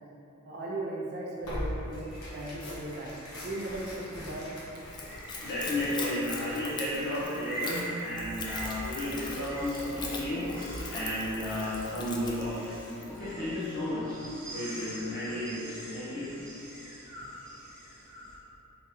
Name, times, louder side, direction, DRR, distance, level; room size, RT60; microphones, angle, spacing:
voice 1, 0.4-4.5 4.7-4.8, right 1 dB, 50° right, -4 dB, 0.5 m, -37 dB
Tearing, 1.4-7.6, equal, 75° left, 1.0 m, -42 dB
sound 1, 1.4-18.4, right 1 dB, 15° right, 1.4 m, -44 dB
Splash splatter / Trickle dribble, 4.8-13.2, left 3 dB, 20° left, 0.3 m, -41 dB
voice 2, 5.4-14.2 14.5-16.3, left 1 dB, 55° left, -10 dB, 0.7 m, -33 dB
4.1 x 3.4 x 2.9 m, 2.8 s
head